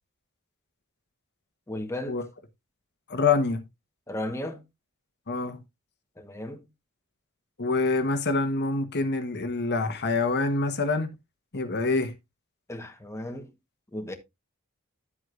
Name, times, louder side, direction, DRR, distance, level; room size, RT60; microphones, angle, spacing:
voice 1, 1.7-2.2 4.1-4.6 6.2-6.7 12.7-13.5 13.9-14.2, left 1 dB, 15° left, 1.1 m, -35 dB
voice 2, 3.1-3.6 5.3-5.6 7.6-11.1 11.5-12.1, left 3 dB, 50° left, 1.1 m, -26 dB
11.0 x 7.9 x 2.5 m
head